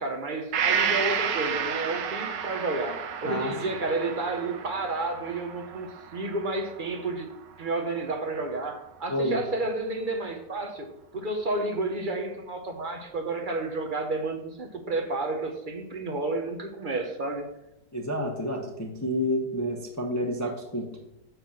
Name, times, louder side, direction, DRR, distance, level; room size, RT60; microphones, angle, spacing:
voice 1, 0.0-7.3 7.6-10.9 11.1-17.4, right 2 dB, 40° right, 4 dB, 0.7 m, -31 dB
Gong, 0.5-8.2 8.6-8.7, right 7 dB, 80° right, 1.4 m, -32 dB
voice 2, 9.1-9.4 17.9-21.0, equal, 15° left, 1 dB, 0.6 m, -29 dB
5.9 x 5.5 x 7.0 m, 0.85 s
omnidirectional pair, 1.9 m